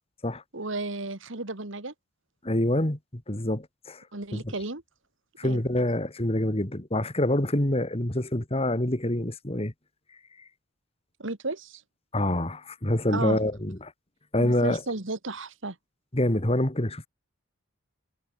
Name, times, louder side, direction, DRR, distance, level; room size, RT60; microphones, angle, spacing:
voice 1, 0.5-1.9 4.1-4.8 5.4-5.6 11.2-11.8 13.1-13.4 14.4-15.8, right 2 dB, 60° right, 2.0 m, -33 dB
voice 2, 2.4-4.0 4.3-4.6 5.4-9.7 12.1-13.9 14.3-14.9 16.1-17.1, left 1 dB, 30° left, 2.0 m, -26 dB
head